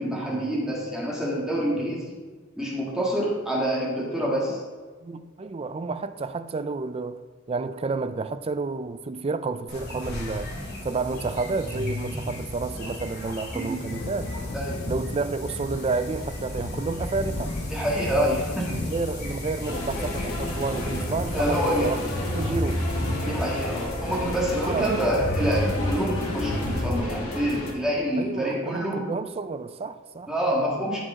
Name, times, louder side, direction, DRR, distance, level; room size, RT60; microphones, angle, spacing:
voice 1, 0.0-2.1 2.6-4.6 13.5-13.8 14.5-14.8 17.7-18.6 21.3-21.9 23.2-29.0 30.3-31.0, equal, 5° right, 1.6 m, -27 dB
voice 2, 5.0-7.2 7.5-10.5 10.8-14.3 14.9-17.5 18.1-18.4 18.7-22.0 22.3-22.9 24.6-25.0 28.2-30.3, right 4 dB, 25° right, 0.3 m, -30 dB
sound 1, 9.7-26.9, left 1 dB, 50° left, 2.5 m, -32 dB
Thunder, 13.9-23.5, left 2 dB, 35° left, 0.5 m, -37 dB
sound 2, 19.6-27.7, left 1 dB, 85° left, 2.1 m, -33 dB
14.0 x 5.1 x 3.6 m
head